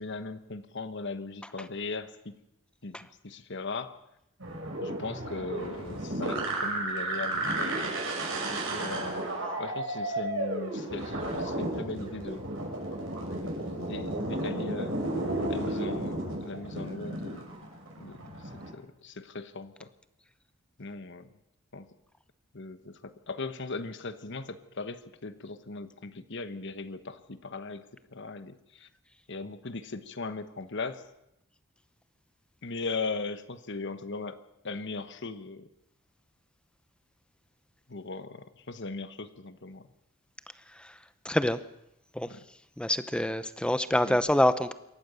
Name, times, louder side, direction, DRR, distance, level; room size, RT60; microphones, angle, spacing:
voice 1, 0.0-2.3 2.8-4.0 4.8-8.0 8.3-9.2 9.6-12.5 13.7-15.0 15.5-17.4 18.0-19.9 20.8-21.3 21.7-21.9 22.5-28.9 29.3-31.0 32.6-35.7 37.9-39.9 42.3-42.5 44.0-44.2, left 3 dB, 55° left, 11 dB, 1.1 m, -39 dB
sound 1, 4.4-18.7, right 1 dB, 60° right, 6.2 m, -33 dB
voice 2, 41.2-41.6 42.1-42.3 42.8-44.7, left 1 dB, 5° left, 13 dB, 0.8 m, -26 dB
26.0 x 14.0 x 6.9 m, 0.85 s
head